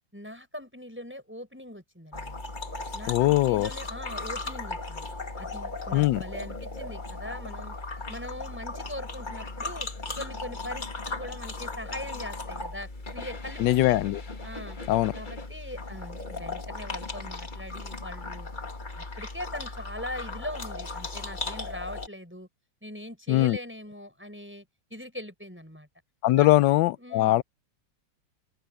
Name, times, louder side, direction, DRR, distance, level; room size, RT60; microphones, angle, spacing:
voice 1, 0.1-2.4 2.9-5.1 5.4-7.8 8.1-9.9 10.2-14.0 14.4-14.8 15.1-18.5 19.0-22.5 22.8-24.7 24.9-25.9 26.4-26.5 27.0-27.4, left 1 dB, 5° right, 5.8 m, -41 dB
sound 1, 2.1-22.1, left 3 dB, 25° left, 1.8 m, -37 dB
voice 2, 3.1-3.7 5.9-6.2 13.6-14.2 14.9-15.1 23.3-23.6 26.2-27.4, left 16 dB, 80° left, 1.3 m, -21 dB
open air
omnidirectional pair, 2.0 m